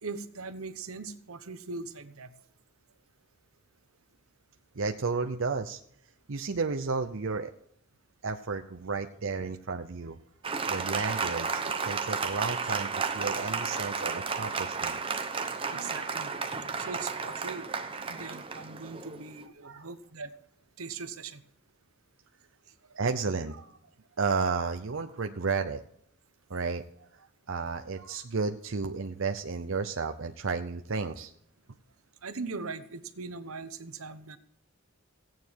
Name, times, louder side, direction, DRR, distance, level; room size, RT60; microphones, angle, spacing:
voice 1, 0.0-2.3 12.7-12.8 15.7-17.6 18.0-20.3 20.8-21.4 22.7-23.0 32.2-34.4, right 4 dB, 85° right, 10 dB, 1.1 m, -40 dB
voice 2, 4.8-5.8 6.3-7.5 8.2-10.2 10.7-15.0 19.6-19.9 23.0-23.7 24.2-25.8 26.5-26.8 27.1-31.3, right 4 dB, 65° right, 6 dB, 0.7 m, -32 dB
Applause, 10.4-19.4, right 5 dB, 25° right, 0.9 m, -33 dB
16.0 x 9.3 x 4.6 m, 0.70 s
head